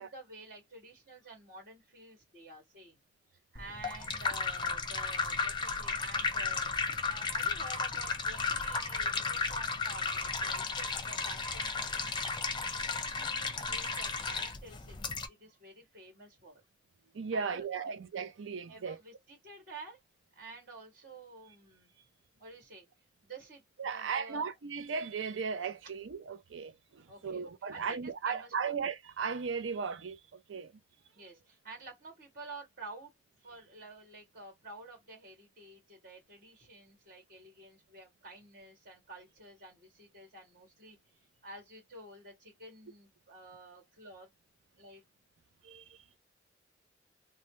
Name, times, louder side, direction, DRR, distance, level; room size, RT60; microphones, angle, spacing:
voice 1, 0.0-3.0 3.3-6.7 7.1-12.5 13.0-15.0 15.3-16.6 17.3-18.0 18.7-20.0 20.4-21.9 22.3-22.9 23.2-24.5 27.1-28.7 31.1-33.1 33.4-44.3 44.8-45.0, right 2 dB, 50° right, 1.8 m, -51 dB
sound 1, 3.5-15.3, left 4 dB, 25° left, 0.6 m, -34 dB
voice 2, 17.1-19.0 23.8-30.7 45.6-46.0, right 5 dB, 90° right, 0.5 m, -36 dB
3.1 x 2.2 x 3.0 m
head